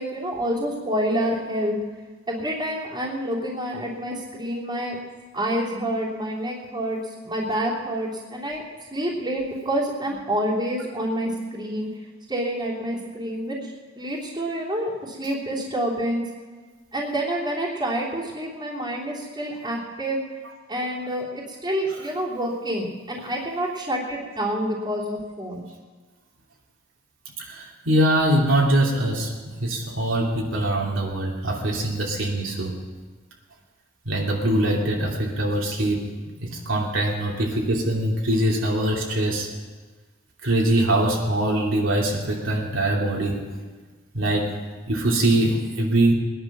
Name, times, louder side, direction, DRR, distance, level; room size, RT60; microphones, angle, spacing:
voice 1, 0.0-1.8 2.3-5.0 5.3-7.0 7.2-8.6 8.9-11.9 12.3-16.3 16.9-20.2 20.7-25.6, right 1 dB, 20° right, -5 dB, 3.2 m, -28 dB
voice 2, 27.4-29.3 29.6-32.7 34.0-36.1 36.4-39.5 40.4-43.4 44.1-44.5 44.9-46.1, right 1 dB, 75° right, -2 dB, 2.7 m, -23 dB
21.0 x 10.5 x 6.1 m, 1.4 s
head